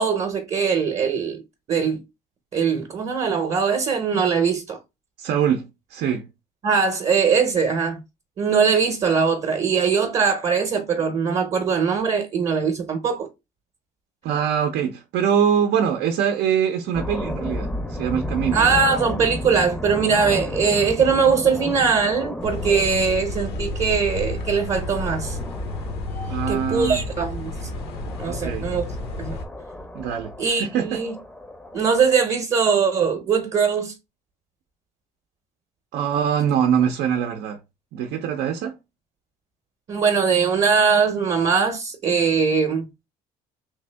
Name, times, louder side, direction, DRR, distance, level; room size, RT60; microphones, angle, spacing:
voice 1, 0.0-1.4 1.7-2.0 2.5-4.8 6.6-8.0 8.4-13.3 18.5-25.4 26.5-27.7 28.2-28.8 29.2-29.4 30.4-31.1 31.7-33.9 39.9-42.9, right 5 dB, 40° right, 0.8 m, -21 dB
voice 2, 5.2-6.3 14.2-18.6 26.3-27.0 28.3-28.7 29.9-31.0 35.9-37.6 37.9-38.8, right 8 dB, 80° right, 0.6 m, -23 dB
sound 1, 16.9-32.2, left 1 dB, 5° left, 0.6 m, -33 dB
sound 2, 22.4-29.5, left 2 dB, 70° left, 0.8 m, -31 dB
3.3 x 2.6 x 3.3 m
cardioid pair, 110°, 17 cm